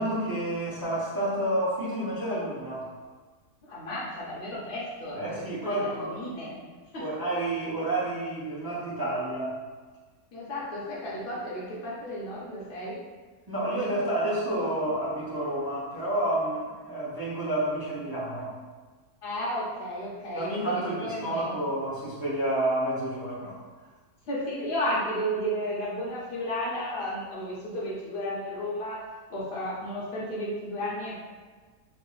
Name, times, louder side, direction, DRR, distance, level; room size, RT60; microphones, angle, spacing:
voice 1, 0.0-2.9 5.1-6.2 7.0-9.5 13.5-18.5 20.3-23.6, right 1 dB, 25° right, -9 dB, 0.5 m, -29 dB
voice 2, 3.6-6.6 6.9-7.0 10.3-13.0 19.2-21.5 24.3-29.0 29.3-31.1, equal, 50° left, -7 dB, 0.7 m, -33 dB
3.6 x 2.1 x 3.8 m, 1.4 s
omnidirectional pair, 1.7 m